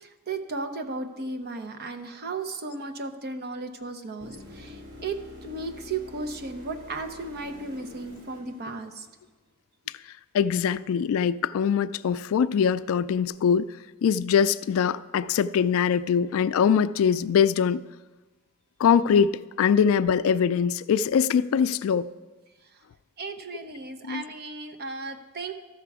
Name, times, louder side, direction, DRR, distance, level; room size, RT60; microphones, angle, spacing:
voice 1, 0.0-5.2 5.4-9.1 23.2-25.5, right 3 dB, 50° right, 0.8 m, -35 dB
sound 1, 4.2-9.3 13.2-13.3, left 2 dB, 65° right, 3.5 m, -46 dB
voice 2, 10.3-13.7 14.0-17.8 18.8-22.1 24.0-24.2, left 7 dB, 70° left, 0.3 m, -22 dB
14.0 x 5.9 x 4.7 m
head